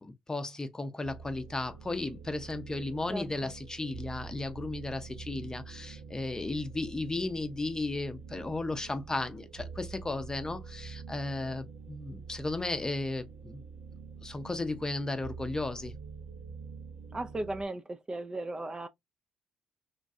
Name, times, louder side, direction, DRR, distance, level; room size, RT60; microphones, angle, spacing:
voice 1, 0.0-13.6 14.2-15.9, left 2 dB, 20° left, 0.6 m, -35 dB
sound 1, 1.0-17.7, right 5 dB, 75° right, 0.8 m, -46 dB
voice 2, 3.1-3.5 17.1-18.9, right 2 dB, 25° right, 0.4 m, -36 dB
3.1 x 2.2 x 2.6 m
hypercardioid pair, 50°, 3 cm